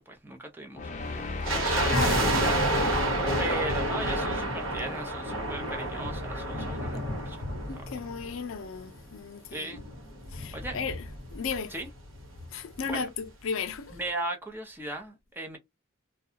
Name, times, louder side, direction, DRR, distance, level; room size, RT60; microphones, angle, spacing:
voice 1, 0.1-2.6 3.4-7.4 7.7-7.9 9.5-9.8 10.5-10.8 11.7-11.9 12.8-13.1 13.9-15.6, right 2 dB, 10° right, 0.6 m, -37 dB
sound 1, 0.7-5.8, left 3 dB, 40° left, 0.6 m, -36 dB
sound 2, 1.4-8.7 9.0-9.1 9.8-11.6 11.8-11.9 12.2-12.5 12.9-13.0, right 1 dB, 80° right, 1.2 m, -29 dB
voice 2, 1.9-2.3 7.7-9.7 10.3-11.0 11.3-11.7 12.5-13.1 13.4-14.0, left 5 dB, 85° left, 0.5 m, -34 dB
sound 3, 4.0-9.8, right 1 dB, 45° right, 0.9 m, -50 dB
2.3 x 2.2 x 2.7 m
head